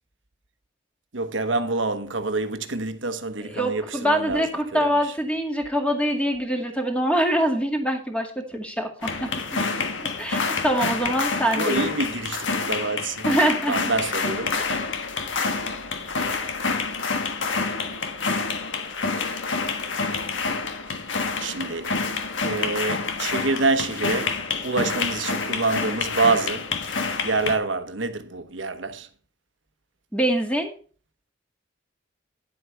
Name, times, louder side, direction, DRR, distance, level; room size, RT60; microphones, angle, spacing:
voice 1, 1.1-5.1 11.5-13.3 13.7-14.5 21.4-21.9 22.4-26.7 27.2-29.1, right 3 dB, 85° right, 1.1 m, -27 dB
voice 2, 3.4-9.6 10.2-11.8 13.2-13.9 30.1-30.7, right 1 dB, 5° left, 2.0 m, -24 dB
sound 1, 9.0-27.5, left 4 dB, 85° left, 1.4 m, -27 dB
10.5 x 7.8 x 4.4 m
head